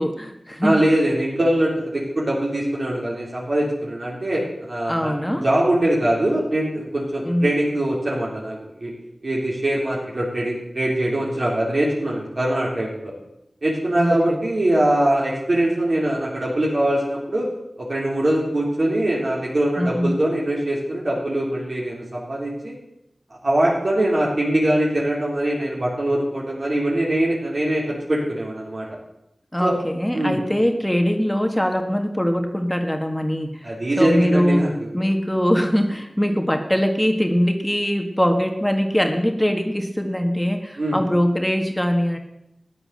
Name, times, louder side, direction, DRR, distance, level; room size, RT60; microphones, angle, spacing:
voice 1, 0.0-0.8 4.9-5.4 7.2-7.6 14.0-14.4 19.8-20.1 29.5-33.7 34.0-34.7 34.9-42.2, equal, 10° left, 5 dB, 1.7 m, -22 dB
voice 2, 0.6-5.1 5.4-8.9 9.2-13.1 13.6-17.5 17.8-22.7 23.4-28.9 29.6-29.8 30.1-30.4 33.6-34.9 40.8-41.0, right 1 dB, 60° right, -5 dB, 3.9 m, -22 dB
14.0 x 9.8 x 7.7 m, 0.85 s
wide cardioid pair, 50°, 0 cm